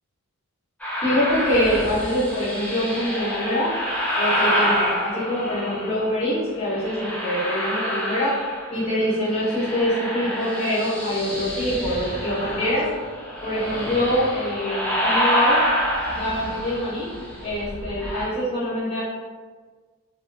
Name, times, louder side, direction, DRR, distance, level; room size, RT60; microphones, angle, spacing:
sound 1, 0.8-6.1 6.7-8.9 9.1-18.2, equal, 5° left, 0.3 m, -27 dB
voice 1, 1.0-3.7 4.2-8.3 8.7-12.8 13.4-15.6 16.2-17.1 17.4-19.0, equal, 25° left, -8 dB, 0.8 m, -24 dB
2.7 x 2.3 x 2.2 m, 1.5 s
head